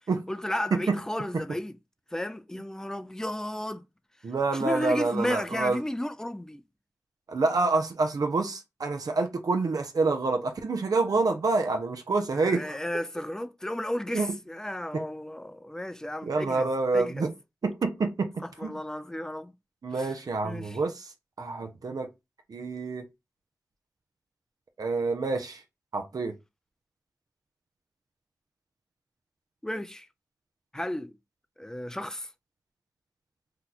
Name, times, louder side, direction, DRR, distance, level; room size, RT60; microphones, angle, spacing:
voice 1, 0.3-1.7 2.1-3.8 4.5-6.6 12.4-16.7 16.9-17.3 18.6-19.5 20.0-20.1 20.4-20.8 29.6-30.1 30.7-31.1 31.6-32.3, left 1 dB, 10° left, 0.4 m, -33 dB
voice 2, 4.2-5.8 7.3-12.8 14.1-14.4 14.9-15.0 16.2-17.3 17.6-18.7 19.8-21.1 21.4-22.1 22.5-23.1 24.8-25.6 25.9-26.3, right 3 dB, 65° right, 0.5 m, -27 dB
2.8 x 2.3 x 3.9 m
cardioid pair, 40°, 7 cm